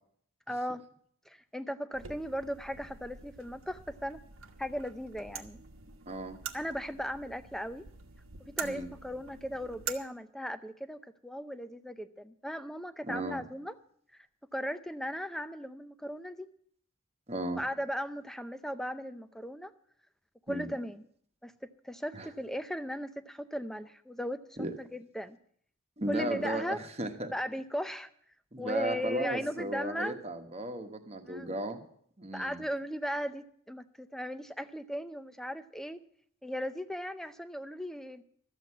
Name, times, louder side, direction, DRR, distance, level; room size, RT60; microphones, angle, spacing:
voice 1, 0.5-0.9 1.3-4.2 4.6-5.6 6.5-7.9 8.4-13.7 14.5-16.5 17.5-19.7 20.5-21.0 21.4-24.4 24.8-25.4 26.1-26.8 27.3-28.1 28.6-30.2 31.3-31.5 32.3-36.0 36.4-38.2, equal, ahead, 11 dB, 0.5 m, -37 dB
sound 1, 1.9-9.9, right 7 dB, 70° right, 1.2 m, -45 dB
voice 2, 6.1-6.4 8.6-8.9 13.0-13.4 17.3-17.6 20.5-20.7 22.1-22.3 24.6-24.7 26.0-27.3 28.5-31.8 32.2-32.6, right 1 dB, 30° right, 6 dB, 1.2 m, -35 dB
13.0 x 7.9 x 8.3 m, 0.63 s
head